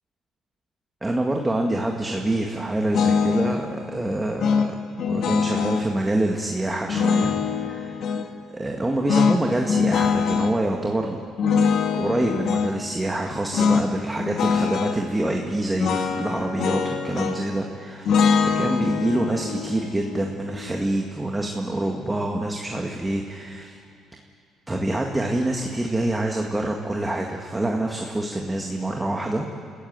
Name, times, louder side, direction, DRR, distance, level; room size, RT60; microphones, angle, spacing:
voice 1, 1.0-4.7 5.1-7.3 7.6-8.1 8.5-11.2 11.9-23.8 24.7-29.5, right 1 dB, 15° right, 1 dB, 1.9 m, -26 dB
sound 1, 2.9-3.6 4.4-5.9 6.9-8.3 9.1-10.6 11.4-12.7 13.5-13.9 14.2-15.0 15.8-17.6 18.1-21.1, left 6 dB, 60° left, 1.8 m, -23 dB
27.5 x 15.0 x 8.9 m, 2.5 s
cardioid pair, 110°, 0 cm